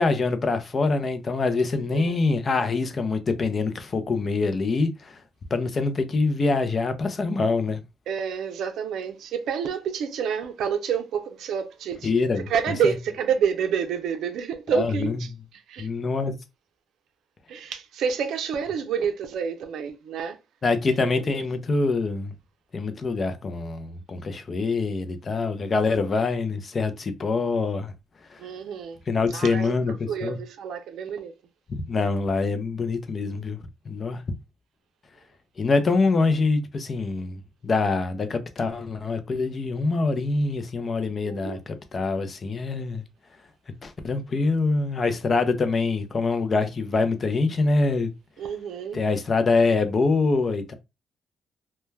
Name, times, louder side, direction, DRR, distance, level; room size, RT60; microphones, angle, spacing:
voice 1, 0.0-5.2 5.5-7.8 12.0-12.5 12.8-12.9 14.7-15.2 15.8-16.3 20.6-22.3 22.7-27.9 28.3-28.4 29.1-30.4 31.7-33.6 33.9-34.2 35.6-43.0 43.8-48.1 48.9-50.8, left 3 dB, 35° left, 0.5 m, -25 dB
voice 2, 1.7-2.2 8.1-12.1 12.4-15.3 15.7-15.9 17.5-20.4 21.0-21.2 28.4-29.0 29.3-29.7 30.1-31.3 41.2-41.6 48.4-49.0, right 7 dB, 80° right, 0.5 m, -28 dB
2.2 x 2.2 x 3.1 m
cardioid pair, 115°, 0 cm